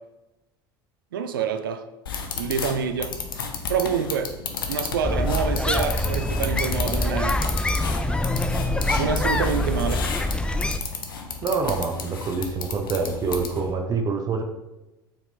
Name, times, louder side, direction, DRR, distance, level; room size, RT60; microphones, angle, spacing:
voice 1, 1.1-1.9 2.3-3.2 3.7-4.4 4.7-7.4 9.0-10.0, right 7 dB, 75° right, 0.4 m, -27 dB
sound 1, 2.1-13.7, left 5 dB, 75° left, 0.6 m, -33 dB
sound 2, 5.0-10.8, left 1 dB, 10° left, 0.3 m, -25 dB
voice 2, 11.4-14.4, right 4 dB, 35° right, 0.6 m, -26 dB
4.7 x 3.5 x 3.2 m
figure-of-eight pair, 70°, 12 cm